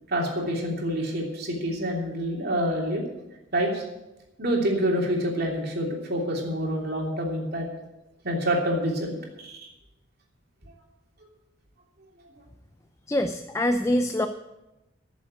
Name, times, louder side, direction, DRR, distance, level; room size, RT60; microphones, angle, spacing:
voice 1, 0.1-3.0 3.5-3.8 4.4-7.7 8.2-9.2 9.4-9.7, equal, 55° right, -1 dB, 3.0 m, -27 dB
voice 2, 13.1-14.3, left 1 dB, 15° left, 7 dB, 0.4 m, -24 dB
14.0 x 7.2 x 8.1 m, 0.97 s
head